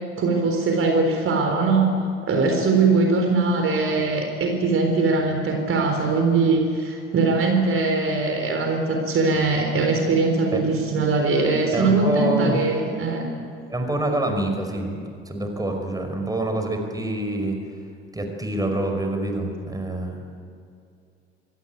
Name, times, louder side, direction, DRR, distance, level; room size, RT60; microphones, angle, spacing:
voice 1, 0.2-1.9 2.3-13.3, right 3 dB, 40° right, 3 dB, 4.0 m, -21 dB
voice 2, 11.7-12.6 13.7-17.6 18.1-20.2, right 1 dB, 10° right, 4 dB, 5.3 m, -26 dB
25.0 x 19.0 x 9.4 m, 2.4 s
figure-of-eight pair, 55°, 32 cm